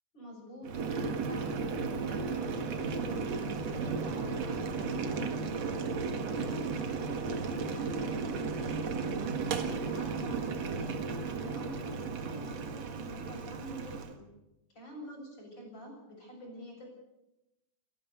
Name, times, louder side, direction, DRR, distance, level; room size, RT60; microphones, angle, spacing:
voice 1, 0.1-5.8 6.2-9.2 9.7-14.2 14.7-16.9, equal, 25° left, 1 dB, 7.3 m, -47 dB
Boiling, 0.6-14.1, right 4 dB, 55° right, 1.9 m, -34 dB
29.0 x 12.0 x 8.1 m, 0.96 s
omnidirectional pair, 5.4 m